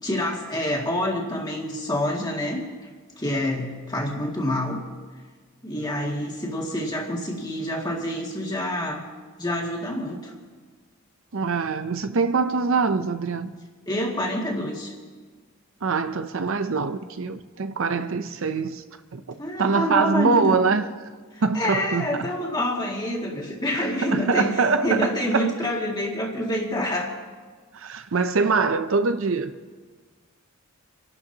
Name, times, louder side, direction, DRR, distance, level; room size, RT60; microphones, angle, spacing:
voice 1, 0.0-2.6 3.2-4.8 5.6-9.0 9.4-10.3 13.9-14.9 19.4-20.6 21.3-27.1, left 1 dB, 20° left, 2.2 m, -27 dB
voice 2, 11.3-13.5 15.8-18.8 19.1-20.9 21.4-22.3 23.7-25.5 27.7-29.5, right 4 dB, 65° right, 0.6 m, -24 dB
29.0 x 12.0 x 2.9 m
head